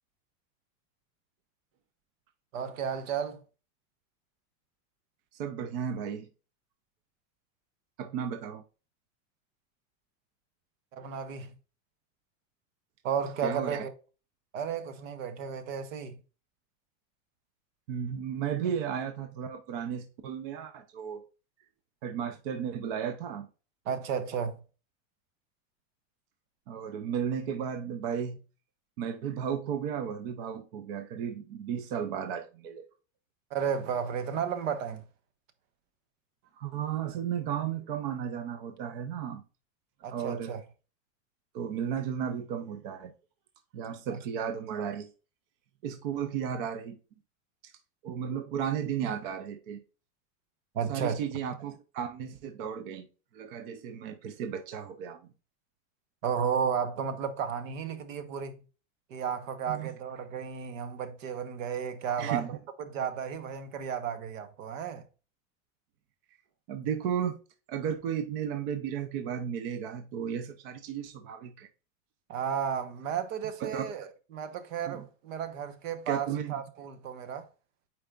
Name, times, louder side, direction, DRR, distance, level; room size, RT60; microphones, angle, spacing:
voice 1, 2.5-3.4 10.9-11.5 13.0-13.9 14.5-16.2 23.8-24.6 33.5-35.0 40.0-40.6 50.7-51.2 56.2-58.5 59.1-65.0 72.3-77.5, right 7 dB, 65° right, 1.2 m, -33 dB
voice 2, 5.3-6.3 8.0-8.6 13.4-13.8 17.9-21.2 22.0-23.5 26.7-28.4 29.0-32.8 36.6-39.4 40.1-40.6 41.5-43.1 43.7-45.1 45.8-47.0 47.6-47.7 48.0-49.8 50.9-53.1 53.3-55.3 59.7-59.9 62.2-62.6 66.7-67.4 67.7-71.7 73.6-73.8 74.9-75.0 76.1-76.6, right 8 dB, 40° right, 0.6 m, -34 dB
8.6 x 4.6 x 2.4 m
supercardioid pair, 175°, 41 cm